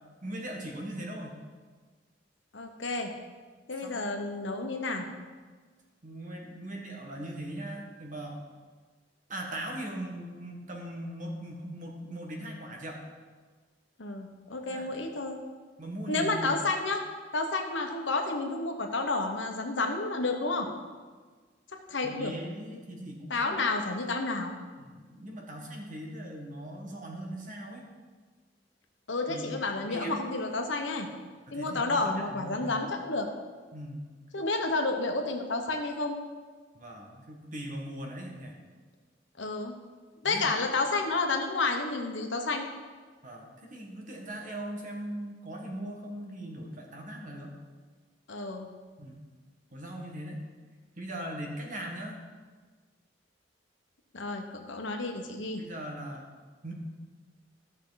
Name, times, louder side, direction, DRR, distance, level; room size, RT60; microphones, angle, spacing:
voice 1, 0.2-1.4 3.8-4.1 6.0-8.4 9.3-13.0 14.7-14.9 15.8-16.6 22.0-23.6 24.8-27.9 29.3-29.5 29.8-30.2 31.5-32.8 33.7-34.0 36.7-38.5 40.2-40.5 43.2-47.6 49.0-49.2 49.7-50.4 51.0-52.2 55.6-56.3 56.6-56.7, right 1 dB, 45° right, 1 dB, 1.7 m, -40 dB
voice 2, 2.5-3.1 3.7-5.1 14.0-15.4 16.1-17.0 17.3-20.7 21.9-22.3 23.3-24.6 29.1-31.1 31.5-33.3 34.3-36.2 39.4-39.7 40.2-42.7 48.3-48.7 54.1-55.6, left 3 dB, 90° left, 3 dB, 1.2 m, -30 dB
14.5 x 6.3 x 4.1 m, 1.4 s
head